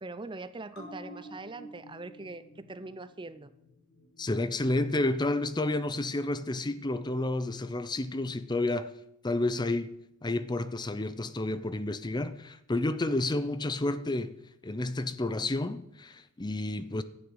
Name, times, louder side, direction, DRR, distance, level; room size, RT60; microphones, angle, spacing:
voice 1, 0.0-3.5 4.4-4.5, right 3 dB, 25° right, 0.6 m, -42 dB
sound 1, 0.7-7.6 8.0-8.1, equal, 65° left, 4.8 m, -52 dB
voice 2, 4.2-8.9 9.2-9.9 10.2-14.4 14.6-17.0, left 2 dB, 20° left, 0.6 m, -30 dB
13.5 x 9.8 x 8.1 m
head